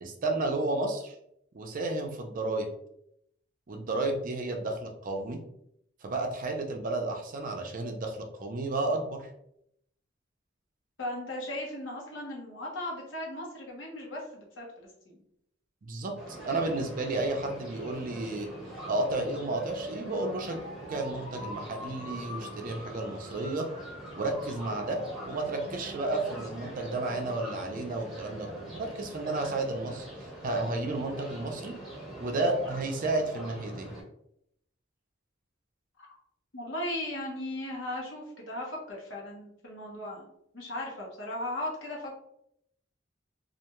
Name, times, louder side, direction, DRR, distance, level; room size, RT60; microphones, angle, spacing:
voice 1, 0.0-1.2 1.5-2.7 3.7-5.4 6.0-9.3 15.8-18.5 18.9-23.7 24.2-25.0 25.3-30.1 30.4-31.8 32.2-33.9, right 2 dB, 45° right, 3 dB, 0.4 m, -32 dB
voice 2, 11.0-15.2 36.0-36.1 36.5-40.3 40.5-42.1, left 1 dB, 70° left, -2 dB, 0.9 m, -37 dB
sound 1, 16.2-34.0, right 1 dB, ahead, 1.1 m, -42 dB
2.4 x 2.2 x 2.9 m, 0.75 s
head